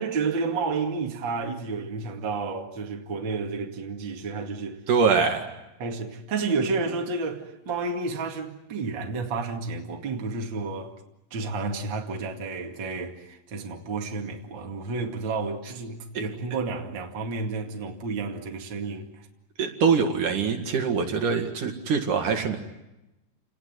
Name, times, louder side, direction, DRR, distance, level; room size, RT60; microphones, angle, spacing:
voice 1, 0.0-4.8 5.8-10.9 11.3-19.3, right 4 dB, 35° right, 2.6 m, -31 dB
voice 2, 4.9-5.5 19.6-22.6, right 5 dB, 60° right, 3.4 m, -23 dB
29.5 x 19.5 x 9.5 m
omnidirectional pair, 4.2 m